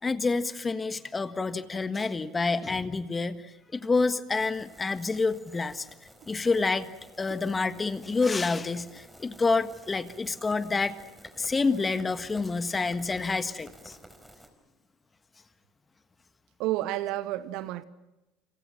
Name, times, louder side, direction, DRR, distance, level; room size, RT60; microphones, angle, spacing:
voice 1, 0.0-5.9 6.3-6.9 7.2-11.0 11.4-14.0, left 4 dB, 20° left, 1.6 m, -28 dB
sound 1, 4.3-14.5, right 1 dB, 5° right, 4.6 m, -53 dB
voice 2, 16.6-17.8, right 15 dB, 60° right, 1.1 m, -30 dB
30.0 x 25.5 x 5.9 m
hypercardioid pair, 70°, 0 cm